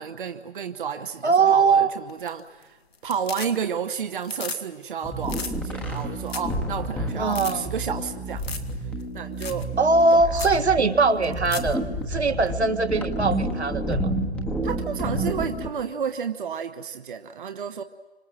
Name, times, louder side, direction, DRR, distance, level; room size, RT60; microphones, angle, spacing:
voice 1, 0.0-2.8 3.0-8.6 9.1-9.7 10.1-10.5 14.6-17.8, right 7 dB, 50° right, 8 dB, 1.1 m, -31 dB
voice 2, 1.2-1.9 7.2-7.7 9.8-11.8 12.1-14.1, right 3 dB, 80° right, 7 dB, 1.9 m, -21 dB
sound 1, 2.1-2.6 2.9-3.9 4.2-4.6 4.9-5.0 5.2-5.5 6.0-6.1 6.3-6.6 6.9-7.0 7.3-7.5 8.4-8.7 9.0-9.1 9.4-9.6 10.0-10.1 10.4-10.6 11.2-11.7 13.9-14.0, left 5 dB, 65° left, 2.2 m, -35 dB
sound 2, 5.0-15.7, right 1 dB, 5° left, 1.2 m, -30 dB
29.0 x 26.0 x 7.6 m, 1.2 s
figure-of-eight pair, 145°, 33 cm